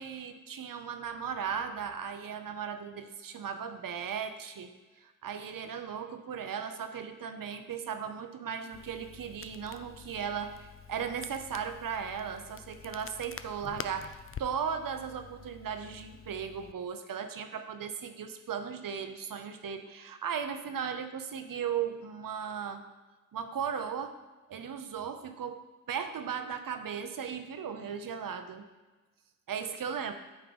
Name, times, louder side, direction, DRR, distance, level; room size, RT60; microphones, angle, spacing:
voice 1, 0.0-4.7 5.0-22.8 23.3-24.2 24.5-28.6 29.5-30.1, right 7 dB, 75° right, 8 dB, 0.7 m, -37 dB
Crackle, 8.7-16.7, left 7 dB, 40° left, 0.4 m, -47 dB
8.8 x 3.8 x 5.1 m, 1.2 s
cardioid pair, 65°, 33 cm